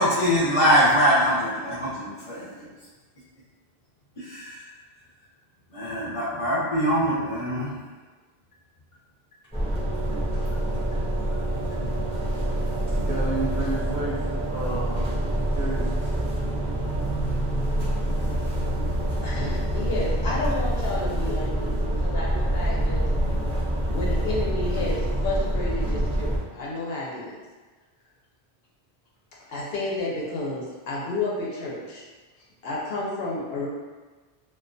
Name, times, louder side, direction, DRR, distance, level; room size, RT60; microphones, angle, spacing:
voice 1, 0.0-2.7 4.2-4.6 5.7-7.7 11.6-12.0 13.0-13.2, equal, 35° left, -9 dB, 0.7 m, -23 dB
sound 1, 9.5-26.4, right 1 dB, 10° left, 0.4 m, -26 dB
voice 2, 12.9-16.7 18.0-18.5, right 2 dB, 55° right, -7 dB, 0.6 m, -33 dB
voice 3, 19.2-23.4 23.9-27.4 29.5-32.0 32.6-33.7, left 2 dB, 80° left, -4 dB, 0.8 m, -31 dB
2.3 x 2.2 x 2.5 m, 1.3 s
omnidirectional pair, 1.0 m